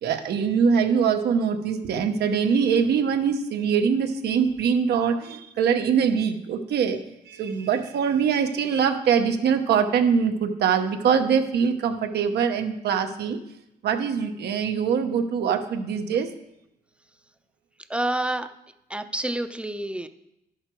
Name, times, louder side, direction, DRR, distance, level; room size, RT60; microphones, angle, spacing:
voice 1, 0.0-7.0 7.3-13.4 13.8-16.3, right 7 dB, 80° right, 6 dB, 0.9 m, -23 dB
voice 2, 17.9-18.5 18.9-20.1, right 1 dB, 5° right, 10 dB, 0.5 m, -28 dB
11.0 x 6.5 x 4.5 m, 0.85 s
cardioid pair, 90°, 17 cm